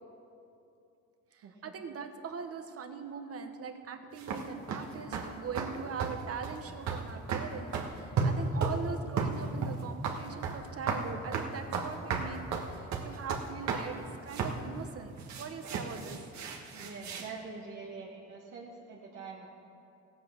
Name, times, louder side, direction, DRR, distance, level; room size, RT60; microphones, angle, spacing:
voice 1, 1.3-12.4 12.7-16.2, right 6 dB, 50° right, 7 dB, 1.2 m, -41 dB
sound 1, 4.2-4.8 5.1-5.3 5.5-5.7 6.0-6.2 6.4-6.6 6.9-7.0 7.3-7.9 8.2-8.9 9.2-10.6 10.9-11.1 11.3-13.9 14.3-14.6 15.2-17.3, right 5 dB, 65° right, 1.5 m, -33 dB
voice 2, 16.7-19.5, right 4 dB, 80° right, -3 dB, 1.5 m, -44 dB
15.5 x 8.3 x 6.5 m, 2.7 s
cardioid pair, 90°, 30 cm